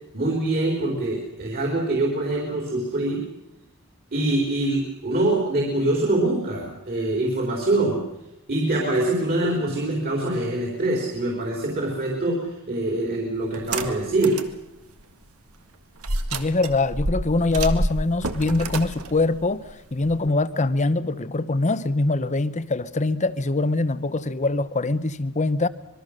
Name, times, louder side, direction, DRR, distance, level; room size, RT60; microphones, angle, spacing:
voice 1, 0.1-3.2 4.1-8.0 8.5-14.4, right 2 dB, 45° right, 4.0 m, -24 dB
sound 1, 13.5-14.5 15.0-15.1 16.0-20.3, right 2 dB, 75° right, 1.7 m, -28 dB
voice 2, 16.3-19.6 19.9-25.7, left 2 dB, 35° left, 0.8 m, -23 dB
25.5 x 22.0 x 6.6 m
head